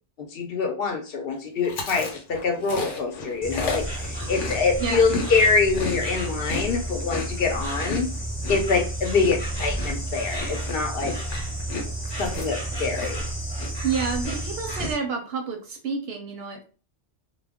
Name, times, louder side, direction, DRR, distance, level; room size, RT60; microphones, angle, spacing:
voice 1, 0.2-8.1 8.5-11.1 12.2-13.3, left 4 dB, 60° left, 4 dB, 0.8 m, -25 dB
Chewing mastication, 1.6-5.3 5.6-13.3 13.6-13.9 14.2-14.9, left 3 dB, 90° left, 1.0 m, -34 dB
Insect, 3.4-14.9, right 1 dB, 5° left, 0.9 m, -31 dB
voice 2, 13.8-16.6, right 5 dB, 65° right, 4 dB, 0.7 m, -29 dB
2.2 x 2.2 x 3.4 m, 0.38 s
omnidirectional pair, 1.2 m